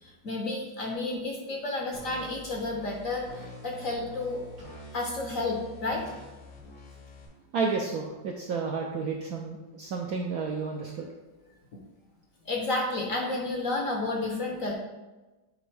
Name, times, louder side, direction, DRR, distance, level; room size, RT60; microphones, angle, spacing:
voice 1, 0.0-4.4 4.9-6.0 12.4-14.7, left 2 dB, 60° left, 0 dB, 0.9 m, -31 dB
sound 1, 1.9-7.3, equal, 80° left, 2.0 m, -47 dB
voice 2, 7.5-11.1, right 4 dB, 75° right, 1 dB, 0.8 m, -31 dB
8.6 x 3.4 x 3.3 m, 1.1 s
omnidirectional pair, 2.1 m